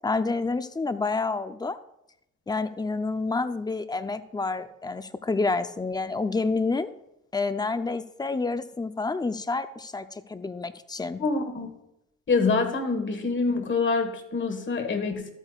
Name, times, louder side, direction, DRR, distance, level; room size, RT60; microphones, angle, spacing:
voice 1, 0.0-1.8 2.5-6.9 7.3-11.2, left 3 dB, 15° left, 11 dB, 0.6 m, -28 dB
voice 2, 11.2-11.7 12.3-15.3, left 4 dB, 40° left, 6 dB, 1.5 m, -26 dB
12.5 x 9.0 x 2.4 m, 0.83 s
cardioid pair, 90°, 30 cm